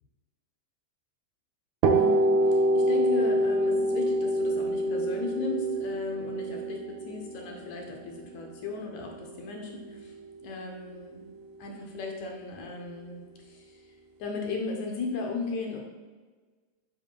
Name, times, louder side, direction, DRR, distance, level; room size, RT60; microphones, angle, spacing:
voice 1, 1.8-10.1 10.4-11.2 11.6-13.9 14.2-15.8, left 3 dB, 70° left, 1 dB, 2.0 m, -36 dB
sound 1, 1.8-9.5, right 1 dB, 80° right, 2.0 m, -26 dB
8.7 x 4.9 x 2.2 m, 1.4 s
omnidirectional pair, 3.6 m